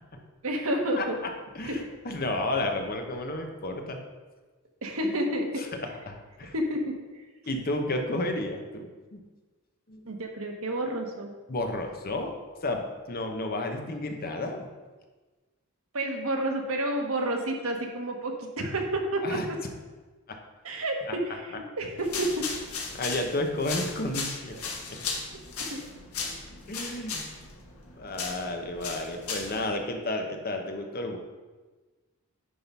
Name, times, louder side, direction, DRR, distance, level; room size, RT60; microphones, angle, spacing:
voice 1, 0.4-1.2 1.6-1.7 4.8-5.6 6.5-6.9 10.0-11.3 15.9-19.4 20.6-22.4 24.9-25.0 25.6-25.8 26.2-26.4, right 1 dB, 70° right, 2 dB, 1.2 m, -30 dB
voice 2, 1.5-4.0 5.0-5.1 5.8-6.5 7.5-9.2 9.9-10.1 11.5-12.3 12.6-14.7 19.2-19.5 20.3-20.4 22.9-24.6 24.9-25.0 26.7-27.3 28.0-31.2, left 2 dB, 45° left, 4 dB, 0.9 m, -32 dB
sound 1, 22.0-29.7, left 4 dB, 80° left, 1.5 m, -36 dB
10.0 x 3.8 x 5.4 m, 1.3 s
head